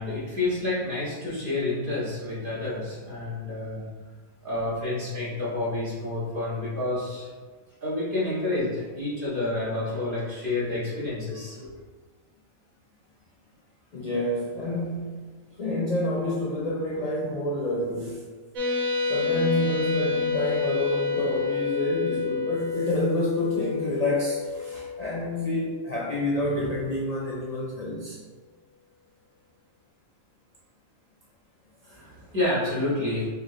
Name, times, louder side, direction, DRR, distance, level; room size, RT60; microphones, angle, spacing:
voice 1, 0.0-3.8 4.4-7.3 7.8-11.7 31.9-33.3, left 2 dB, 40° right, -9 dB, 1.8 m, -29 dB
voice 2, 13.9-15.2 15.6-18.3 19.1-28.2 31.8-31.9, left 1 dB, 75° left, -5 dB, 0.3 m, -28 dB
sound 1, 18.6-26.6, left 5 dB, 80° right, 1.2 m, -29 dB
4.4 x 2.9 x 3.7 m, 1.4 s
omnidirectional pair, 1.4 m